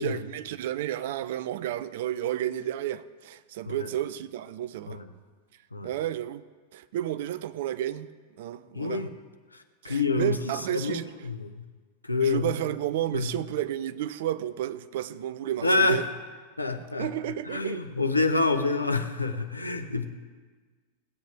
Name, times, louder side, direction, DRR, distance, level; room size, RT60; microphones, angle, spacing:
voice 1, 0.0-5.0 5.8-6.4 6.7-8.1 8.4-9.0 9.8-11.1 12.2-16.1 17.0-17.8, right 12 dB, 55° right, 0.5 m, -31 dB
voice 2, 8.7-9.1 9.5-10.4 10.7-11.7 12.0-12.6 13.1-13.3 15.6-16.0 16.6-17.1 17.4-20.1, left 3 dB, 85° left, 0.8 m, -27 dB
18.0 x 8.2 x 3.5 m
figure-of-eight pair, 90°, 0 cm